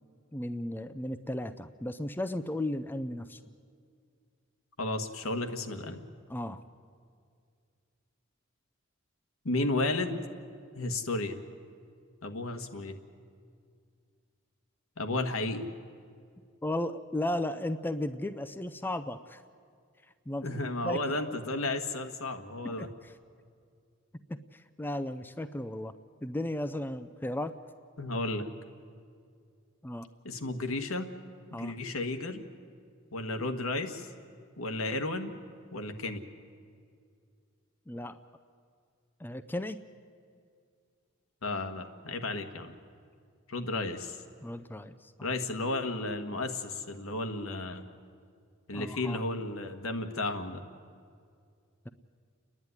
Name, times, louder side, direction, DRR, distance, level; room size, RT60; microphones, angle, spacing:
voice 1, 0.3-3.4 6.3-6.6 16.6-19.4 20.3-21.2 22.6-23.1 24.3-25.9 26.2-27.6 29.8-30.1 31.5-31.7 37.9-38.2 39.2-39.8 44.4-45.1 48.7-49.2, left 1 dB, 10° left, 9 dB, 0.5 m, -35 dB
voice 2, 4.8-6.0 9.4-10.2 10.7-11.4 12.2-13.0 15.0-15.7 20.4-22.9 28.0-28.5 30.2-31.1 31.5-32.5 33.1-34.1 34.6-35.3 35.7-36.2 41.4-42.7 43.5-44.2 45.2-47.8 48.7-50.6, left 2 dB, 85° left, 6 dB, 1.5 m, -33 dB
30.0 x 10.5 x 9.6 m, 2.2 s
head